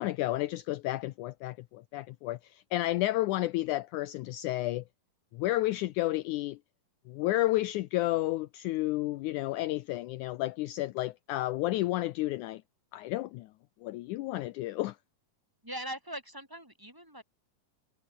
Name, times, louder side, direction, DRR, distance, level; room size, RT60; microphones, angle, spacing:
voice 1, 0.0-4.8 5.3-6.6 7.1-12.6 12.9-13.5 13.8-15.0, left 17 dB, 75° left, 1.9 m, -31 dB
voice 2, 15.6-17.2, right 1 dB, 5° right, 4.6 m, -41 dB
omnidirectional pair, 3.9 m